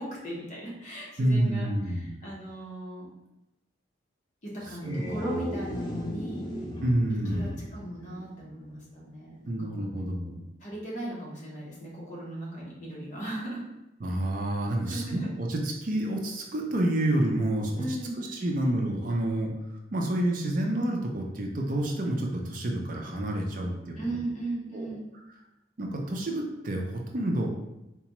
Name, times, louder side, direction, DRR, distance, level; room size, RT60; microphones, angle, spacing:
voice 1, 0.0-3.1 4.4-6.4 7.3-9.9 10.6-13.6 14.9-15.3 17.8-18.2 24.0-25.1, right 1 dB, 40° left, -4 dB, 1.0 m, -37 dB
voice 2, 1.2-2.2 4.8-5.2 6.8-7.6 9.5-10.4 14.0-17.8 18.2-19.5 19.9-23.9 24.7-25.0 25.8-27.5, right 1 dB, 45° right, 1 dB, 0.5 m, -29 dB
sound 1, 4.6-8.8, equal, 25° left, 0.4 m, -37 dB
3.9 x 2.3 x 2.9 m, 0.93 s
head